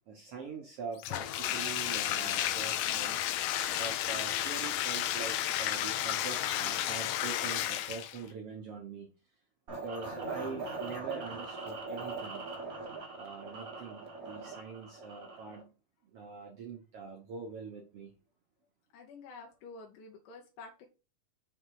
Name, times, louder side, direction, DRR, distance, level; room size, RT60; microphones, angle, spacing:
voice 1, 0.1-3.2 3.8-9.1 9.7-12.4 13.2-15.7 16.0-18.1, right 5 dB, 70° right, 1.4 m, -44 dB
Bathtub (filling or washing), 1.0-8.3, left 12 dB, 90° left, 2.3 m, -32 dB
sound 1, 9.7-15.6, right 3 dB, 50° right, 1.0 m, -41 dB
voice 2, 18.9-20.9, left 4 dB, 70° left, 2.4 m, -49 dB
6.0 x 3.6 x 4.7 m
omnidirectional pair, 4.0 m